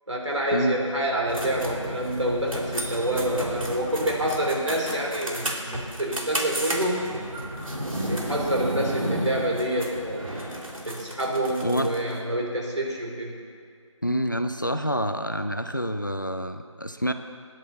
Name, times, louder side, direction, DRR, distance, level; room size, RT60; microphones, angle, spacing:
voice 1, 0.1-7.1 8.1-10.4 10.8-13.3, right 1 dB, 60° right, -2 dB, 3.5 m, -27 dB
sound 1, 1.3-12.1, right 1 dB, 85° right, 2.7 m, -32 dB
voice 2, 14.0-17.1, equal, 35° left, 8 dB, 0.5 m, -27 dB
20.0 x 10.5 x 4.1 m, 2.3 s
figure-of-eight pair, 180°, 17 cm